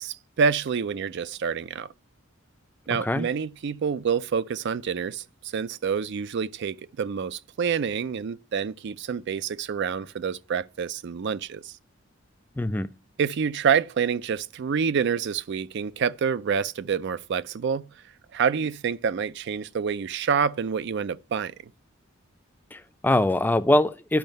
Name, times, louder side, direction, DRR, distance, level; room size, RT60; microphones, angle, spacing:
voice 1, 0.0-1.9 2.9-11.7 13.2-17.9 18.3-21.7, right 6 dB, 60° right, 0.4 m, -27 dB
voice 2, 12.6-12.9 22.7-24.2, left 1 dB, 10° left, 0.4 m, -23 dB
11.0 x 5.5 x 5.2 m
head